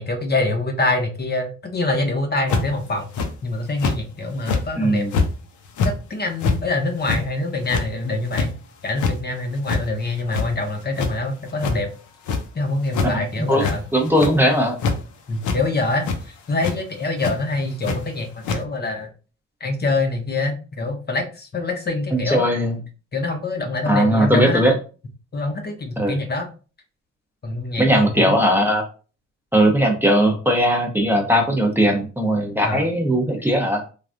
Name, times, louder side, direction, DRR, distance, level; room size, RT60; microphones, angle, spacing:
voice 1, 0.0-3.1 3.4-5.1 5.8-8.5 8.8-11.9 12.5-13.8 15.3-16.1 16.5-19.1 19.6-22.5 23.1-24.6 25.3-26.5 27.4-28.4 32.6-32.9, left 2 dB, 35° left, 4 dB, 0.7 m, -25 dB
Flapping wings (foley), 2.5-2.8 3.1-3.3 3.8-4.0 4.4-4.6 5.1-5.3 5.6-5.9 6.4-6.6 7.0-7.2 7.6-7.8 8.3-8.5 8.8-9.1 9.6-9.8 10.2-10.7 11.0-11.1 11.6-11.7 12.2-12.4 12.9-13.1 13.5-13.8 14.0-14.4 14.8-14.9 15.4-15.6 16.0-16.2 16.6-16.7 17.2-17.3 17.8-18.0 18.4-18.6, left 4 dB, 75° left, 0.7 m, -23 dB
voice 2, 4.8-5.1 13.1-14.8 22.1-22.8 23.9-24.7 26.0-26.1 27.8-28.8 29.5-33.8, equal, 5° right, 0 dB, 0.6 m, -19 dB
3.2 x 2.3 x 2.5 m, 0.35 s
cardioid pair, 90°, 30 cm